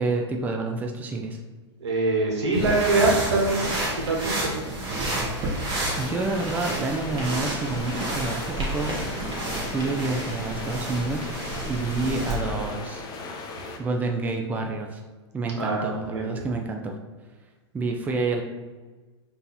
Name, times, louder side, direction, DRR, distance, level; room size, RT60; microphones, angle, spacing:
voice 1, 0.0-1.4 5.4-5.6 6.0-9.0 9.7-11.3 11.7-13.1 13.8-15.0 15.3-17.0 17.7-18.4, right 3 dB, 10° right, 2 dB, 0.4 m, -28 dB
voice 2, 1.8-4.6 15.5-16.3, right 2 dB, 80° right, -1 dB, 1.2 m, -24 dB
sound 1, 2.5-12.4, right 1 dB, 35° right, 1.3 m, -30 dB
sound 2, 5.9-13.8, left 3 dB, 30° left, 0.6 m, -38 dB
3.7 x 2.8 x 4.1 m, 1.3 s
hypercardioid pair, 115°, 14 cm